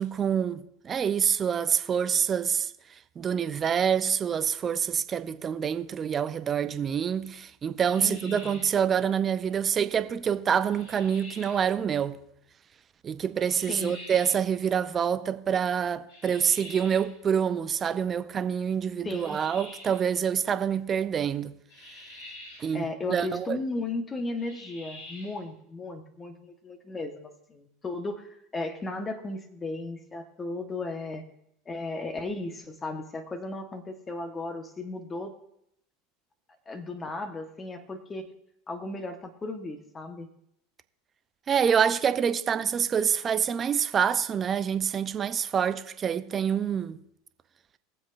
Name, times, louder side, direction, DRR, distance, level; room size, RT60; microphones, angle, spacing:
voice 1, 0.0-2.7 3.2-12.2 13.0-21.5 22.6-23.6 41.5-47.0, right 7 dB, 30° right, 0.6 m, -26 dB
sound 1, 7.8-8.8 10.7-11.7 13.4-14.5 16.1-17.2 19.0-20.1 21.7-22.7 24.4-25.4, left 1 dB, 70° left, 4.1 m, -46 dB
voice 2, 8.0-8.6 13.7-13.9 19.0-19.4 22.7-31.2 31.7-35.3 36.7-38.3 38.7-40.3, left 2 dB, 25° left, 1.3 m, -35 dB
21.0 x 7.5 x 2.6 m
hypercardioid pair, 85°, 0 cm